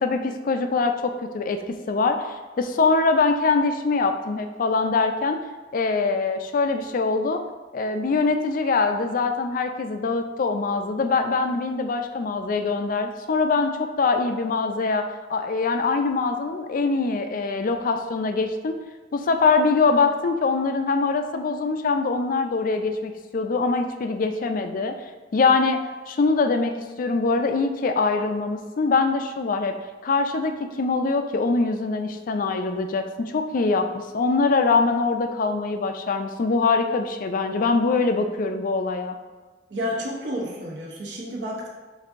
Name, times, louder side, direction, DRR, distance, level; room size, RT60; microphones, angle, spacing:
voice 1, 0.0-2.3 2.6-5.4 5.7-7.4 7.7-18.8 19.1-25.0 25.3-29.8 30.0-39.2, left 4 dB, 45° left, 7 dB, 0.3 m, -23 dB
voice 2, 39.7-41.7, equal, 65° right, -3 dB, 0.8 m, -30 dB
7.2 x 2.6 x 2.5 m, 1.3 s
head